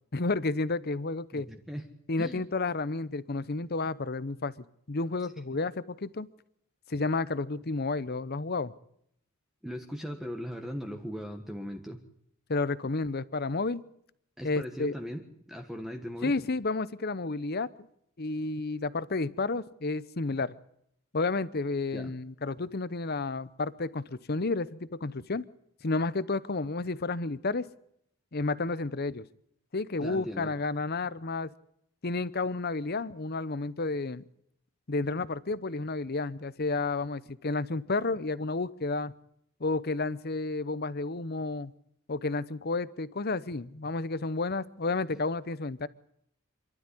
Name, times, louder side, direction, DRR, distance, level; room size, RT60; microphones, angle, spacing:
voice 1, 0.1-1.5 2.1-6.3 6.9-8.7 12.5-13.8 14.4-14.9 16.2-17.7 18.2-20.5 21.1-25.4 25.8-27.7 28.3-29.2 29.7-31.5 32.0-34.2 34.9-39.1 39.6-41.7 42.1-45.9, left 3 dB, 45° left, 17 dB, 0.8 m, -31 dB
voice 2, 1.3-1.9 2.2-2.5 9.6-12.0 14.4-16.3 21.9-22.1 30.0-30.5, equal, ahead, 3 dB, 1.5 m, -39 dB
27.0 x 12.5 x 9.9 m, 0.73 s
head